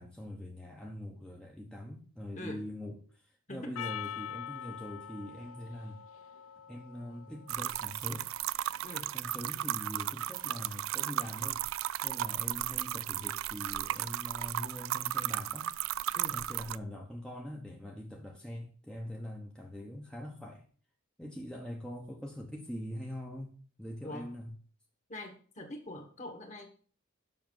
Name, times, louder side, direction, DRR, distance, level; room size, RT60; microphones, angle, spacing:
voice 1, 0.0-6.0 6.7-8.3 9.1-11.7 12.0-15.7 16.3-20.6 21.2-24.5, left 1 dB, 5° left, 1.0 m, -43 dB
voice 2, 3.5-3.9 8.8-9.1 16.1-16.4 24.0-24.3 25.1-26.7, left 1 dB, 35° left, 1.9 m, -44 dB
Percussion, 3.8-8.3, left 9 dB, 90° left, 0.5 m, -44 dB
sound 1, 7.5-16.8, right 12 dB, 80° right, 0.3 m, -35 dB
7.4 x 6.1 x 7.7 m
head